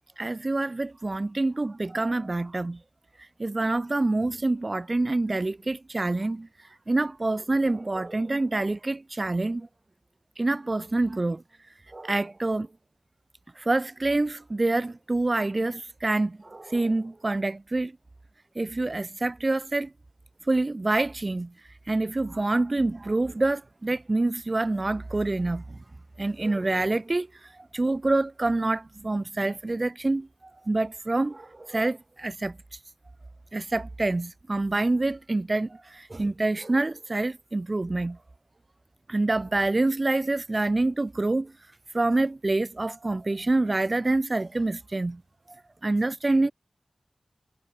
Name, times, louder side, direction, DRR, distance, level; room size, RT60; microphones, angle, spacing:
voice 1, 0.2-2.8 3.4-6.5 6.9-9.7 10.4-11.4 11.9-12.7 13.6-17.9 18.5-19.9 20.5-21.5 21.9-25.8 26.2-27.3 27.7-30.3 30.6-32.6 33.5-38.2 39.1-41.5 41.9-45.2 45.8-46.5, right 2 dB, 40° right, 1.3 m, -26 dB
wide cardioid pair, 60°, 0 cm